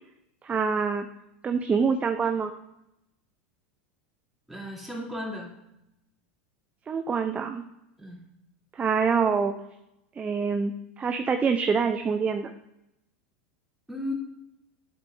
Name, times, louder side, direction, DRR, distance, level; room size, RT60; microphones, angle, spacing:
voice 1, 0.4-1.1 1.4-2.5 6.9-7.6 8.7-9.6 10.2-12.5, right 5 dB, 20° right, 7 dB, 0.5 m, -25 dB
voice 2, 4.5-5.5 8.0-8.2 13.9-14.1, left 1 dB, 5° right, -5 dB, 3.0 m, -35 dB
10.5 x 8.2 x 2.6 m, 0.86 s
hypercardioid pair, 100°, 6 cm